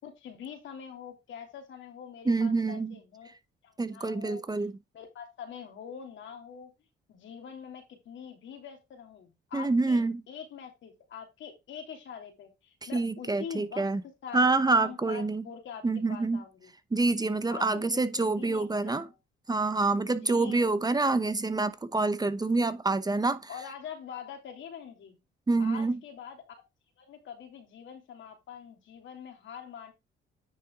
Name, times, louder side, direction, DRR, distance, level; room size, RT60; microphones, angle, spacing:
voice 1, 0.0-3.3 3.6-4.4 4.9-6.7 7.1-10.0 10.3-13.9 14.2-15.8 16.1-16.7 17.5-19.1 20.1-20.7 23.5-25.2 25.6-26.6 27.0-29.9, left 7 dB, 70° left, 3.1 m, -44 dB
voice 2, 2.3-3.0 3.8-4.7 9.5-10.2 12.9-14.0 14.3-15.4 15.8-16.4 16.9-19.1 19.5-23.5 25.5-26.0, right 3 dB, 20° right, 0.9 m, -27 dB
9.8 x 5.6 x 3.8 m
cardioid pair, 90°, 20 cm